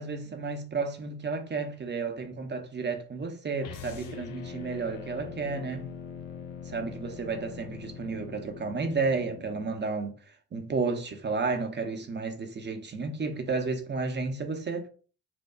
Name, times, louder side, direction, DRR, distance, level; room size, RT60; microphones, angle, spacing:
voice 1, 0.0-5.9 6.6-10.1 10.5-14.9, right 4 dB, 30° right, 0.7 m, -32 dB
sound 1, 3.6-9.8, left 7 dB, 75° left, 0.5 m, -42 dB
4.3 x 2.3 x 2.3 m
hypercardioid pair, 50°, 35 cm